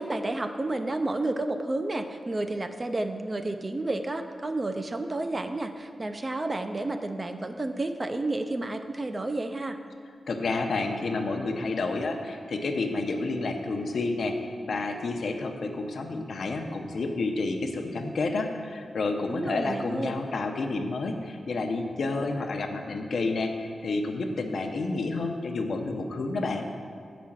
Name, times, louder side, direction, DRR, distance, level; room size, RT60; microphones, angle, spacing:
voice 1, 0.0-9.8 19.3-20.1, right 2 dB, 20° right, 7 dB, 0.4 m, -31 dB
voice 2, 10.3-26.7, left 3 dB, 60° left, 4 dB, 0.7 m, -30 dB
7.5 x 5.1 x 7.2 m, 2.4 s
wide cardioid pair, 180°, 0 cm